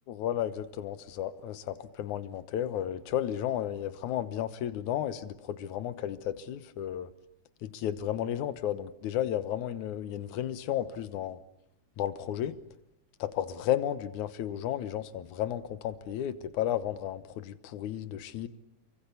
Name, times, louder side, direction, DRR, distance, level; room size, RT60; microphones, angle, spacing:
voice 1, 0.1-7.1 7.6-11.4 12.0-12.6 13.2-18.5, left 11 dB, 80° left, 13 dB, 2.6 m, -33 dB
29.5 x 23.0 x 8.4 m, 0.80 s
omnidirectional pair, 3.4 m